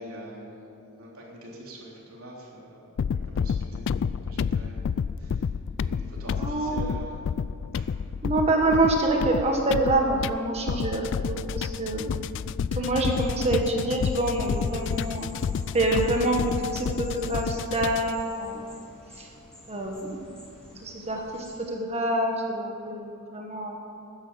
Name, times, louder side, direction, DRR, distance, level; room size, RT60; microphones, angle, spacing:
voice 1, 0.0-5.5 5.8-7.3 7.8-7.9, equal, 65° right, -3 dB, 3.6 m, -45 dB
sound 1, 3.0-18.2, left 6 dB, 55° left, 0.3 m, -30 dB
voice 2, 6.4-6.8 8.2-12.1 12.7-15.3 15.7-18.7 19.1-19.3 19.7-20.3 20.8-23.8, right 2 dB, 30° right, 1 dB, 1.6 m, -26 dB
sound 2, 13.1-21.5, left 1 dB, 5° left, 4.2 m, -50 dB
13.0 x 10.5 x 7.6 m, 2.7 s
head